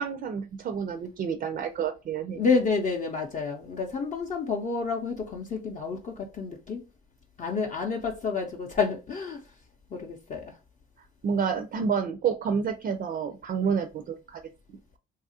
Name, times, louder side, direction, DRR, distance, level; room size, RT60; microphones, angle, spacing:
voice 1, 0.0-2.4 11.2-14.4, right 6 dB, 50° right, 0.4 m, -29 dB
voice 2, 2.3-6.8 7.4-9.4 9.9-10.4, left 4 dB, 40° left, 0.5 m, -29 dB
2.8 x 2.3 x 2.7 m
cardioid pair, 90°, 20 cm